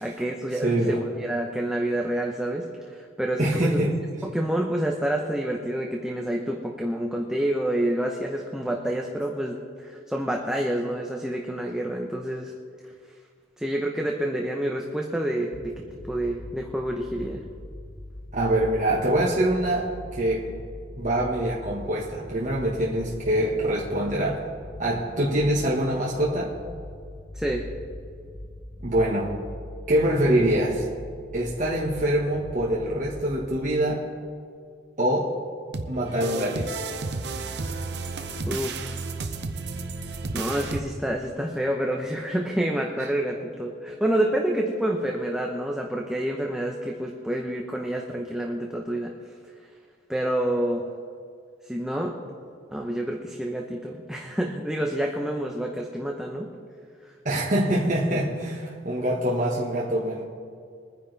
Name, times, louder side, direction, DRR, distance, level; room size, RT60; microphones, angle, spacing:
voice 1, 0.0-3.8 4.2-12.5 13.6-17.4 27.3-27.7 38.5-39.0 40.3-49.1 50.1-50.8 51.7-52.2 52.7-56.5, right 1 dB, 5° right, 0 dB, 0.8 m, -28 dB
voice 2, 0.6-1.0 3.4-3.9 18.3-20.4 21.0-24.5 24.8-26.5 28.8-29.4 29.9-30.8 31.3-34.0 35.0-35.3 35.9-36.7 57.2-60.2, right 1 dB, 45° right, -4 dB, 1.5 m, -24 dB
sound 1, 15.5-33.7, left 1 dB, 30° left, 0.9 m, -41 dB
sound 2, 35.7-40.8, right 3 dB, 65° right, 0.9 m, -32 dB
23.5 x 10.0 x 3.4 m, 2.2 s
head